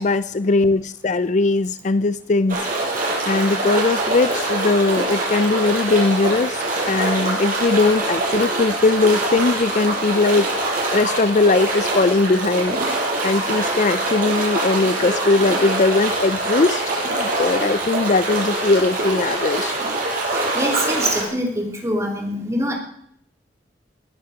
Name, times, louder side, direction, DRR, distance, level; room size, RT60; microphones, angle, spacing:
voice 1, 0.0-2.6 3.3-10.5 10.9-12.8 13.2-16.8 17.1-19.7, left 3 dB, 40° left, 15 dB, 0.5 m, -19 dB
sound 1, 2.5-21.2, right 2 dB, 50° right, 5.5 m, -24 dB
voice 2, 20.5-22.8, equal, 15° right, 2 dB, 3.1 m, -24 dB
20.0 x 10.5 x 5.0 m, 0.69 s
head